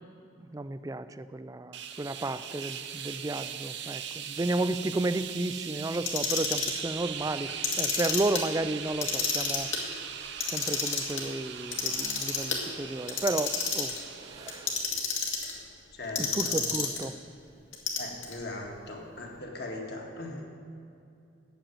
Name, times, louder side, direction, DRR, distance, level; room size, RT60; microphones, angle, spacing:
voice 1, 0.5-7.5 7.8-9.7 10.5-14.0 14.2-14.7 16.2-17.2, right 2 dB, 15° right, 12 dB, 0.3 m, -32 dB
sound 1, 1.7-15.1, right 8 dB, 55° right, 0.7 m, -40 dB
Clock, 5.9-6.8 7.5-8.4 8.9-9.8 10.3-11.2 11.7-12.6 13.1-14.0 14.5-15.5 16.2-17.1 17.7-18.3, left 5 dB, 70° left, 2.0 m, -30 dB
voice 2, 15.9-16.6 18.0-20.4, left 2 dB, 55° left, 0 dB, 1.9 m, -39 dB
9.0 x 8.1 x 9.2 m, 2.6 s
head